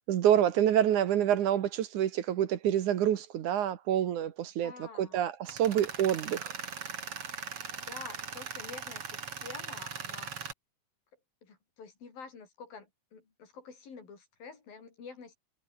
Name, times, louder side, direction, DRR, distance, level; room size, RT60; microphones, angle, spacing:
voice 1, 0.1-6.5, right 10 dB, 65° right, 2.6 m, -27 dB
voice 2, 4.6-5.2 7.7-10.3 11.4-15.4, left 5 dB, 85° left, 7.1 m, -48 dB
Tools, 5.4-10.5, right 7 dB, 45° right, 3.1 m, -40 dB
omnidirectional pair, 4.0 m